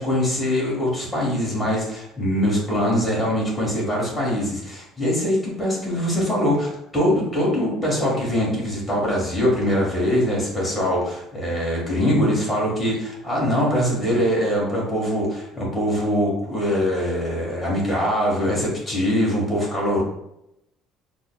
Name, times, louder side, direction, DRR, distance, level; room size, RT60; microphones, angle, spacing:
voice 1, 0.0-20.0, equal, 15° left, -4 dB, 1.4 m, -23 dB
6.0 x 2.1 x 2.2 m, 0.81 s
cardioid pair, 105°, 0 cm